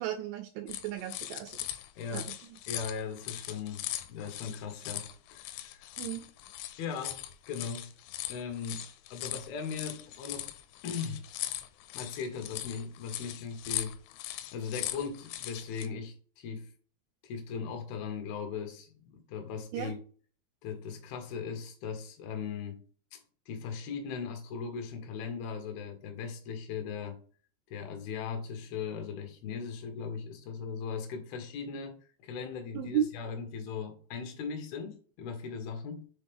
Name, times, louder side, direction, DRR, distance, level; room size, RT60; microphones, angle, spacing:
voice 1, 0.0-1.5 2.1-2.6 6.0-6.3 19.7-19.9 32.7-33.0, right 10 dB, 85° right, 2.8 m, -34 dB
sound 1, 0.7-15.9, left 14 dB, 90° left, 3.2 m, -40 dB
voice 2, 2.0-2.3 2.7-5.9 6.8-7.9 8.3-8.8 9.1-10.5 10.8-11.2 11.9-13.9 14.5-16.7 17.2-20.0 20.6-22.8 23.1-23.2 23.5-27.2 27.7-36.0, left 6 dB, 70° left, 2.5 m, -38 dB
6.8 x 4.1 x 3.5 m
omnidirectional pair, 5.8 m